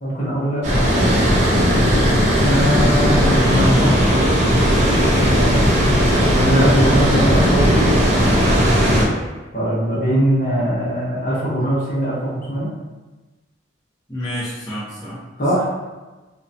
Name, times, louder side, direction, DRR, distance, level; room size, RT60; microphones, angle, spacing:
voice 1, 0.0-2.0 2.4-4.0 4.8-8.0 9.5-12.7 15.4-15.7, right 1 dB, 45° left, -7 dB, 0.9 m, -21 dB
Water, 0.6-9.0, equal, 35° right, 0.6 m, -16 dB
voice 2, 8.2-8.7 14.1-15.2, equal, 15° left, -11 dB, 0.7 m, -29 dB
2.8 x 2.1 x 2.6 m, 1.2 s
head